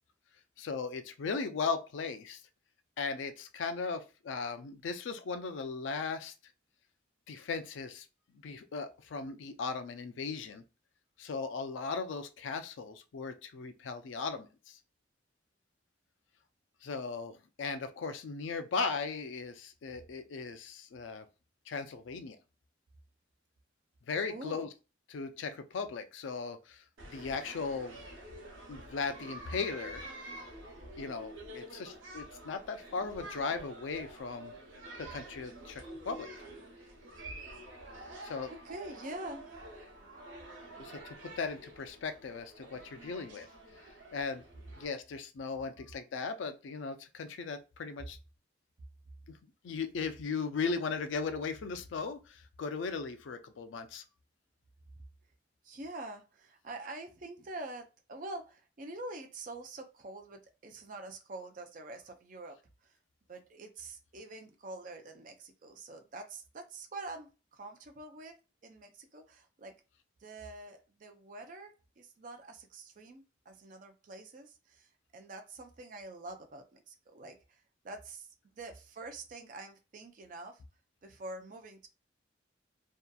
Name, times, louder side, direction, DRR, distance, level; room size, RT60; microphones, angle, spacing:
voice 1, 0.6-2.4 3.0-6.3 7.3-8.1 8.4-10.6 11.2-14.8 16.8-21.3 21.7-22.4 24.1-24.7 25.1-26.8 27.1-28.0 28.7-30.0 31.0-34.5 35.0-36.3 38.2-38.5 40.8-43.5 44.1-44.4 44.8-48.2 49.6-54.0, left 4 dB, 85° left, 0.4 m, -37 dB
voice 2, 24.3-24.7 37.9-38.2 38.5-39.8 55.6-63.0 63.3-69.7 70.2-80.6 81.0-81.9, right 2 dB, 45° right, 0.4 m, -46 dB
sound 1, 27.0-44.9, right 1 dB, 90° right, 0.8 m, -48 dB
2.7 x 2.4 x 2.2 m
head